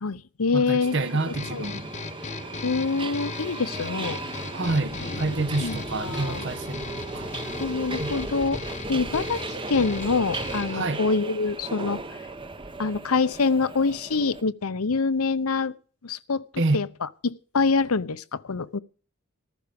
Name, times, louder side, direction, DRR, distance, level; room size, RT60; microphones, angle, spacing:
voice 1, 0.0-1.0 1.3-1.6 2.6-4.2 5.6-6.5 7.6-12.0 12.8-15.7 16.0-16.4 16.7-18.8, left 4 dB, 80° left, 0.8 m, -26 dB
voice 2, 0.5-1.9 4.5-6.9 7.1-7.3 8.0-8.1 10.7-11.0 16.6-16.8, right 2 dB, 55° right, 0.9 m, -27 dB
Subway metro underground, 0.8-14.4, right 2 dB, 20° right, 0.8 m, -36 dB
sound 1, 1.3-10.9, left 4 dB, 30° left, 0.6 m, -38 dB
Wind, 4.6-11.2, left 2 dB, 45° left, 1.0 m, -43 dB
14.5 x 13.0 x 5.2 m
head